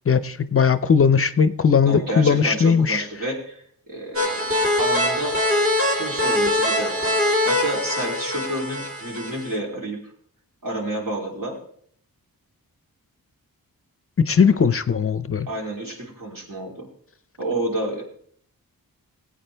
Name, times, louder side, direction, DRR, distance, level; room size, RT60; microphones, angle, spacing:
voice 1, 0.1-3.0 14.2-15.5, left 6 dB, 40° left, 14 dB, 0.5 m, -18 dB
voice 2, 1.8-5.4 5.9-7.2 7.4-10.1 10.6-11.6 15.5-16.9 17.4-18.0, right 1 dB, 65° right, -1 dB, 3.3 m, -30 dB
sound 1, 4.1-9.5, left 1 dB, 40° right, 2.4 m, -23 dB
19.5 x 8.6 x 3.3 m, 0.62 s
wide cardioid pair, 115°, 36 cm